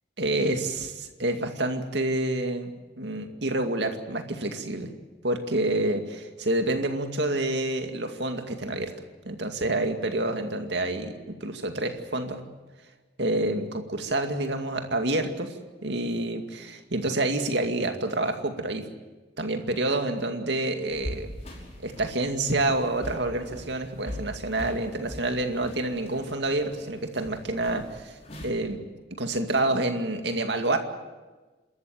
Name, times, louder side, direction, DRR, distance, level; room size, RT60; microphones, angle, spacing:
voice 1, 0.2-2.7 3.0-4.9 5.2-8.9 9.2-11.1 11.4-12.4 13.2-18.8 19.4-21.3 21.8-28.2 28.4-28.8 29.2-30.8, right 2 dB, 65° right, 5 dB, 2.3 m, -28 dB
sound 1, 20.9-28.5, equal, 35° left, 5.6 m, -41 dB
28.0 x 13.5 x 9.1 m, 1.2 s
head